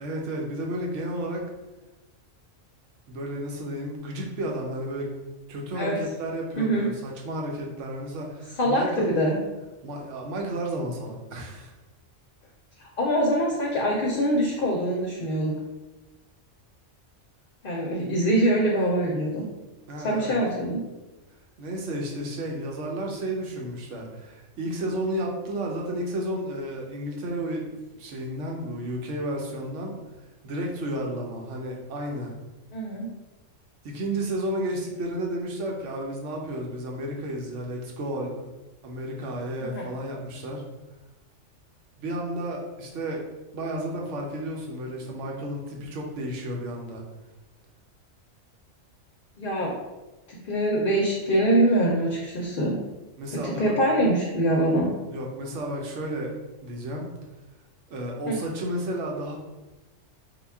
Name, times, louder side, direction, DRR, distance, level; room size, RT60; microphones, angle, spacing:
voice 1, 0.0-1.4 3.1-5.1 5.5-9.1 9.8-11.7 19.9-20.4 21.6-29.9 30.4-32.3 33.8-38.4 38.8-40.6 42.0-43.2 43.5-47.0 53.2-53.7 55.1-56.3 56.6-57.1 57.9-59.4, right 1 dB, 75° right, 0 dB, 1.0 m, -32 dB
voice 2, 6.5-6.9 8.6-9.4 12.8-15.5 17.6-19.5 20.0-20.8 32.7-33.1 39.7-39.9 49.4-49.7 50.3-52.8 53.3-54.9 58.3-58.4, right 1 dB, 55° left, -2 dB, 0.7 m, -24 dB
3.6 x 2.3 x 3.4 m, 1.1 s
omnidirectional pair, 1.3 m